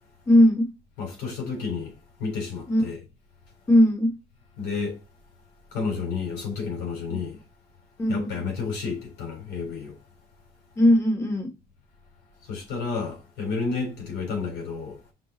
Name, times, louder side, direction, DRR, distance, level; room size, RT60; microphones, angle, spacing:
voice 1, 0.3-0.7 2.7-2.8 3.7-4.1 8.0-8.3 10.8-11.5, left 1 dB, 15° left, 1.9 m, -18 dB
voice 2, 1.0-3.0 4.6-5.0 5.7-7.4 8.1-10.0 12.4-15.0, left 5 dB, 85° left, 3.9 m, -31 dB
6.1 x 3.9 x 4.0 m
cardioid pair, 110°, 17 cm